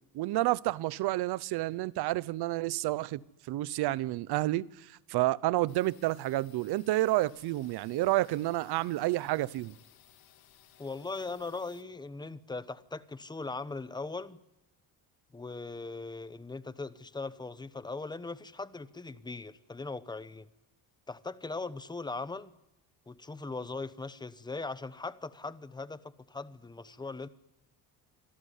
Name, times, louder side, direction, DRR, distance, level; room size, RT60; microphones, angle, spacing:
voice 1, 0.1-3.2 3.5-9.7, right 17 dB, 80° right, 0.9 m, -30 dB
sound 1, 5.7-11.8, left 11 dB, 65° left, 2.5 m, -60 dB
voice 2, 10.8-14.4 15.3-20.5 21.1-22.5 23.1-27.3, left 3 dB, 10° left, 0.9 m, -39 dB
26.0 x 18.0 x 10.0 m
cardioid pair, 155°, 39 cm